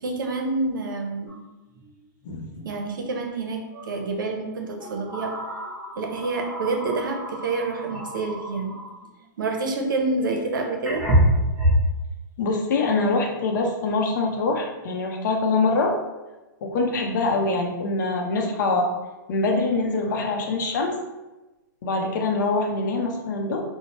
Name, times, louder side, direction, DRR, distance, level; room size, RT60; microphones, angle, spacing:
voice 1, 0.0-1.4 2.6-5.3 6.0-8.8 9.4-11.1, right 3 dB, 85° right, 2 dB, 0.6 m, -28 dB
sound 1, 1.3-1.4 1.7-1.9 3.7-3.9 4.8-9.1 10.3-10.4 10.8-11.9, equal, 15° right, 0.9 m, -26 dB
voice 2, 2.2-2.6 12.4-15.9 16.6-18.9 19.3-20.9 21.8-23.6, left 3 dB, 70° left, 2 dB, 0.6 m, -24 dB
3.0 x 2.1 x 2.9 m, 1.1 s
hypercardioid pair, 135°, 11 cm